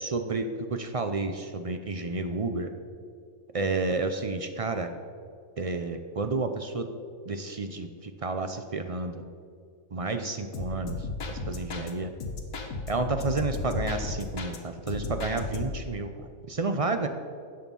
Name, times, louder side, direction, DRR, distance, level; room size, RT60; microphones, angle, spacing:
voice 1, 0.0-2.7 3.5-4.9 5.6-6.9 7.3-9.2 9.9-12.1 12.9-17.1, right 3 dB, 50° right, 7 dB, 0.4 m, -31 dB
sound 1, 10.5-11.9 12.2-14.6 14.9-15.9, left 3 dB, 85° left, 1.7 m, -34 dB
13.0 x 8.7 x 5.4 m, 2.3 s
omnidirectional pair, 1.5 m